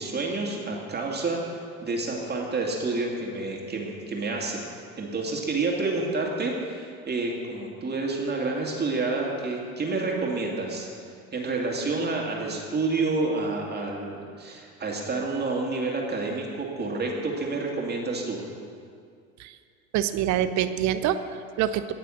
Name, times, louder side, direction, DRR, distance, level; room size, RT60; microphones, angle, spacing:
voice 1, 0.0-4.6 5.0-10.9 11.3-18.4, right 3 dB, 25° right, -1 dB, 2.4 m, -29 dB
voice 2, 19.9-21.9, right 10 dB, 40° right, 12 dB, 0.8 m, -26 dB
18.0 x 6.8 x 6.3 m, 2.3 s
figure-of-eight pair, 75°, 42 cm